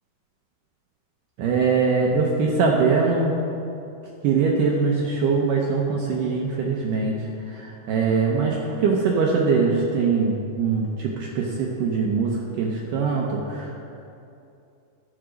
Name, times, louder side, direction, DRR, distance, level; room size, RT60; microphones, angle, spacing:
voice 1, 1.4-3.4 4.2-13.8, right 4 dB, 80° right, -1 dB, 1.9 m, -22 dB
13.0 x 5.0 x 6.3 m, 2.7 s
omnidirectional pair, 4.7 m